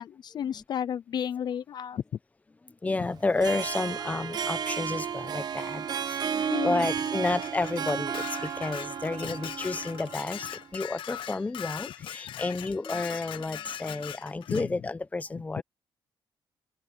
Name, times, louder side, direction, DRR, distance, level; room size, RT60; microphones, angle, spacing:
voice 1, 0.0-2.0 6.5-6.9 14.5-14.6 15.5-15.6, left 9 dB, 55° left, 0.5 m, -32 dB
voice 2, 2.8-10.5 10.7-15.6, left 3 dB, 15° left, 0.9 m, -31 dB
Harp, 3.2-10.6, right 7 dB, 50° right, 1.1 m, -33 dB
Dishes pots and pans, 7.0-14.7, left 11 dB, 70° left, 0.9 m, -40 dB
cardioid pair, 145°, 9 cm